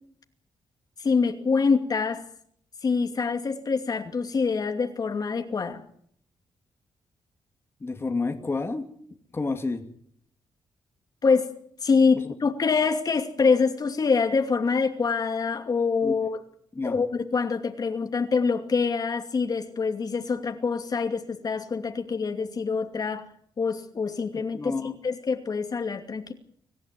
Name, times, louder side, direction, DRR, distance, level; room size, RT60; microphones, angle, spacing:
voice 1, 1.0-2.2 2.8-5.8 11.2-11.6 11.8-16.4 16.8-23.2 23.6-24.8 25.0-26.3, left 5 dB, 45° left, 5 dB, 2.5 m, -25 dB
voice 2, 7.8-8.9 9.3-9.8 16.0-16.1 16.8-17.0 24.5-24.9, left 3 dB, 25° left, 4 dB, 2.5 m, -29 dB
25.5 x 15.0 x 9.4 m, 0.66 s
cardioid pair, 100°, 9 cm